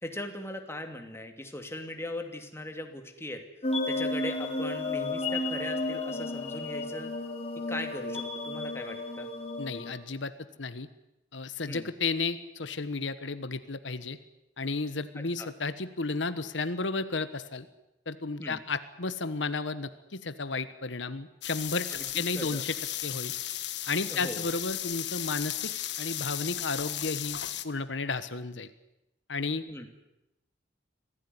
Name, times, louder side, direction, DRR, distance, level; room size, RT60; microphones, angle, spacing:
voice 1, 0.0-3.4 3.9-7.1 7.6-9.3 11.6-11.9 15.4-15.5 18.4-18.6 21.9-22.6 24.1-24.4 29.7-29.9, left 1 dB, 15° left, 5 dB, 2.6 m, -39 dB
sound 1, 3.6-9.9, left 2 dB, 35° left, 3.2 m, -33 dB
voice 2, 9.6-10.3 10.6-10.9 11.3-14.2 14.6-17.7 18.1-21.9 22.1-22.7 23.0-23.3 23.9-27.4 27.6-28.7 29.3-29.6, left 3 dB, 85° left, 12 dB, 1.3 m, -33 dB
sound 2, 21.4-27.6, left 13 dB, 70° left, 1.4 m, -35 dB
25.0 x 16.5 x 9.7 m, 0.90 s
head